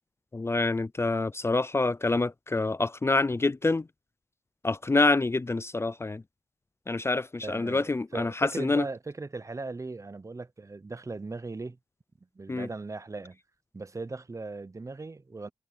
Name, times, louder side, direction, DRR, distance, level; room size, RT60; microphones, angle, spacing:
voice 1, 0.3-3.9 4.6-6.2 6.9-8.9 12.5-12.7, left 3 dB, 25° left, 0.5 m, -26 dB
voice 2, 7.4-11.8 12.3-13.4 13.7-15.5, right 3 dB, 30° right, 0.9 m, -38 dB
supercardioid pair, 45°, 10 cm